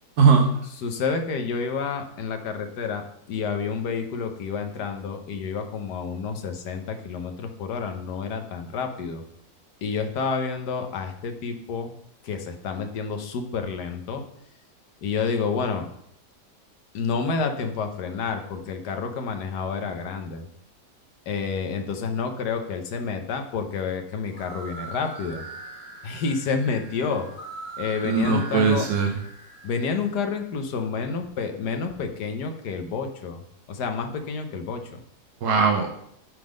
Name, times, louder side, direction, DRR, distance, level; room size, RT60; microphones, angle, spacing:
voice 1, 0.2-0.5 28.0-29.1 35.4-35.9, right 5 dB, 70° right, 0 dB, 1.4 m, -19 dB
voice 2, 0.8-9.2 9.8-11.9 12.2-14.3 15.0-15.9 16.9-20.4 21.3-25.4 26.0-27.3 27.8-28.9 29.6-33.4 33.7-35.0, left 5 dB, 75° left, 6 dB, 1.5 m, -29 dB
sound 1, 24.2-30.1, right 3 dB, 30° left, 1.6 m, -41 dB
9.0 x 3.8 x 5.1 m, 0.72 s
omnidirectional pair, 1.8 m